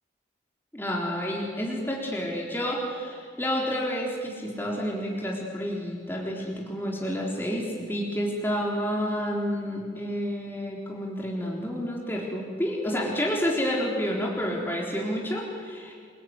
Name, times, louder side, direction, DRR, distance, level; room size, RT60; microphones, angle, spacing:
voice 1, 0.7-15.9, equal, 10° left, -2 dB, 3.9 m, -29 dB
28.5 x 21.0 x 9.6 m, 2.1 s
head